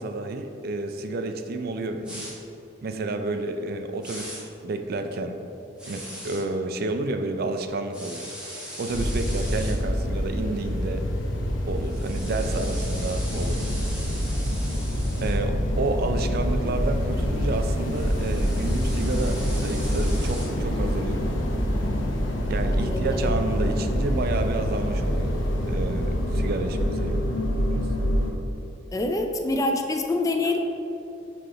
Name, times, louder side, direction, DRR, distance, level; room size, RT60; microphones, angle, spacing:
voice 1, 0.0-2.3 2.8-5.4 5.9-8.3 8.8-11.1 11.7-13.7 15.2-21.3 22.5-25.4 25.7-27.2 27.7-27.9, right 2 dB, 55° right, 6 dB, 0.4 m, -30 dB
sound 1, 2.0-2.3 4.0-4.4 5.8-6.4 7.9-9.7 11.8-15.3 17.5-20.5, equal, 5° right, 1.3 m, -40 dB
sound 2, 8.9-28.3, equal, 85° left, 0.7 m, -26 dB
voice 2, 22.7-23.3 28.9-30.6, left 2 dB, 20° left, 4 dB, 0.4 m, -26 dB
6.0 x 3.4 x 4.7 m, 2.8 s
head